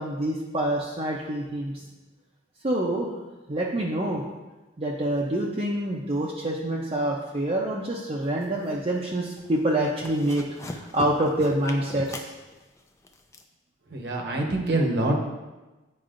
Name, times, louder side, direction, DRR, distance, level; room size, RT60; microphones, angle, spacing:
voice 1, 0.0-1.8 2.6-3.1 3.5-4.2 4.8-12.3, right 1 dB, 30° right, -4 dB, 0.6 m, -26 dB
sound 1, 8.3-9.0 9.3-9.6 9.9-13.4, left 1 dB, 15° left, 0.4 m, -39 dB
voice 2, 13.9-15.1, right 2 dB, 60° right, 2 dB, 1.0 m, -25 dB
9.5 x 4.7 x 2.5 m, 1.1 s
head